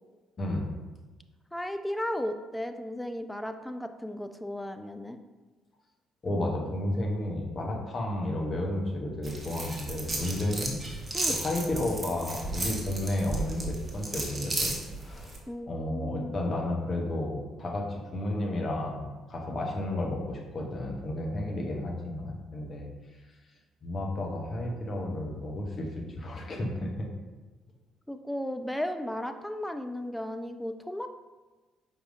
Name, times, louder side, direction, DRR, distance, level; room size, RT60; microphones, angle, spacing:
voice 1, 0.4-0.7 6.2-10.8 11.3-14.7 15.0-15.3 15.7-22.9 23.8-25.9 26.2-27.1, left 1 dB, 40° left, 0 dB, 0.9 m, -32 dB
voice 2, 1.5-5.2 11.1-11.4 15.5-16.4 28.1-31.1, left 1 dB, 5° left, 8 dB, 0.3 m, -35 dB
sound 1, 9.2-15.4, right 2 dB, 35° right, 0.9 m, -34 dB
4.7 x 3.7 x 2.5 m, 1.2 s
figure-of-eight pair, 45°, 0 cm